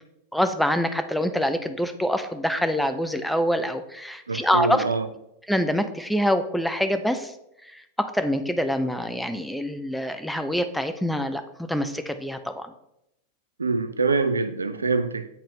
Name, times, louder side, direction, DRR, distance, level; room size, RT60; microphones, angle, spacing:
voice 1, 0.3-4.8 5.5-7.3 7.6-12.7, equal, ahead, 0.5 m, -25 dB
voice 2, 4.3-5.1 13.6-15.3, right 4 dB, 75° right, 0.4 m, -24 dB
8.1 x 4.1 x 3.2 m
figure-of-eight pair, 90°, 0 cm